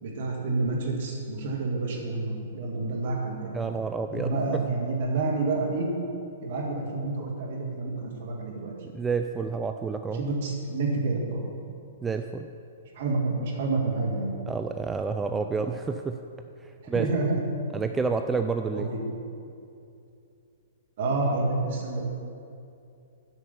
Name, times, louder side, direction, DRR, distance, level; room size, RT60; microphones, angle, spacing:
voice 1, 0.0-3.8 4.1-5.9 6.4-8.7 10.2-11.4 13.0-14.3 16.8-17.4 18.7-19.0 21.0-22.0, right 3 dB, 55° right, -1 dB, 2.0 m, -29 dB
voice 2, 3.5-4.6 8.9-10.2 12.0-12.5 14.5-16.2 16.6-17.1 17.7-18.9, right 4 dB, 10° right, 6 dB, 0.3 m, -29 dB
7.8 x 5.9 x 7.0 m, 2.6 s
figure-of-eight pair, 115°, 0 cm